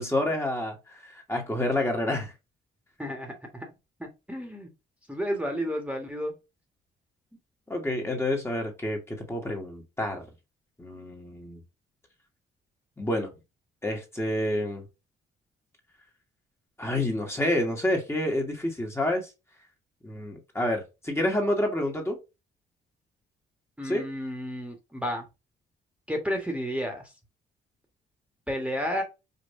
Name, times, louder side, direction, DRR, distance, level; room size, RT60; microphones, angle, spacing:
voice 1, 0.0-2.3 7.7-10.2 10.8-11.6 13.0-13.3 13.8-14.8 16.8-19.3 20.0-22.2 23.8-24.0, left 1 dB, 15° left, 1.5 m, -28 dB
voice 2, 3.0-3.7 4.0-4.7 5.1-6.3 23.8-25.2 26.1-27.1 28.5-29.0, equal, 5° right, 1.4 m, -31 dB
5.3 x 2.6 x 2.6 m
cardioid pair, 85°, 19 cm